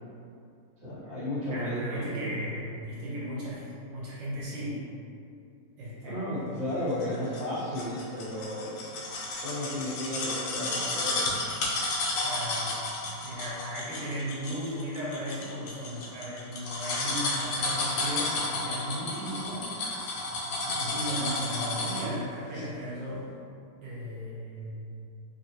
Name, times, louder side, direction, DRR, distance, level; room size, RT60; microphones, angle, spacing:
voice 1, 0.8-2.3 6.0-8.8 9.3-11.4, left 1 dB, 50° right, -11 dB, 1.4 m, -34 dB
voice 2, 1.5-4.8 5.8-6.6 12.2-12.8 13.2-19.7 20.7-23.3 23.8-24.7, equal, 75° right, -7 dB, 1.3 m, -36 dB
sound 1, 7.0-22.2 22.6-22.7, left 2 dB, 80° left, 1.3 m, -32 dB
3.3 x 2.5 x 2.8 m, 2.5 s
omnidirectional pair, 2.0 m